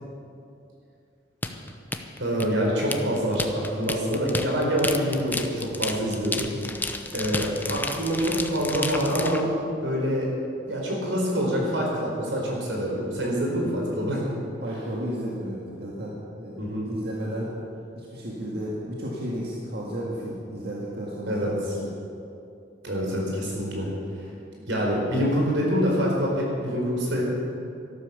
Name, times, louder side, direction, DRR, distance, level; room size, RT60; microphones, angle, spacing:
sound 1, 1.4-9.4, left 2 dB, 10° left, 0.7 m, -32 dB
voice 1, 2.2-6.4 7.1-9.5 9.8-10.3 10.7-14.2 16.6-16.9 21.3-21.5 22.8-23.9 24.7-27.2, equal, 90° right, -2 dB, 4.6 m, -26 dB
voice 2, 14.6-17.5 17.9-21.9, equal, 60° right, -4 dB, 2.0 m, -33 dB
13.0 x 12.5 x 7.1 m, 2.6 s
head